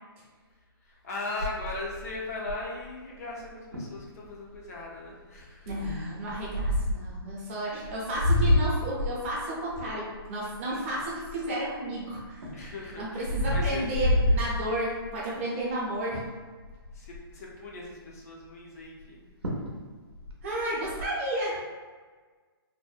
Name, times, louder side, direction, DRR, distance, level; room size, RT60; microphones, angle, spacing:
voice 1, 0.8-5.8 9.9-10.0 10.7-10.9 11.4-11.5 12.5-14.0 16.9-19.4, left 2 dB, 40° left, -3 dB, 0.4 m, -39 dB
sound 1, 1.4-2.9 3.4-3.5 3.7-4.0 4.5-4.8 5.7-7.1 7.8-11.7 12.2-15.2 15.7-16.0 16.2-16.3 16.6-17.3 19.0-19.1 19.4-19.8 20.1-21.1, left 1 dB, 90° right, 0.6 m, -28 dB
voice 2, 5.7-12.7 13.0-16.2 20.4-21.6, right 1 dB, 30° right, -5 dB, 0.6 m, -32 dB
2.6 x 2.0 x 2.4 m, 1.5 s
hypercardioid pair, 150°, 13 cm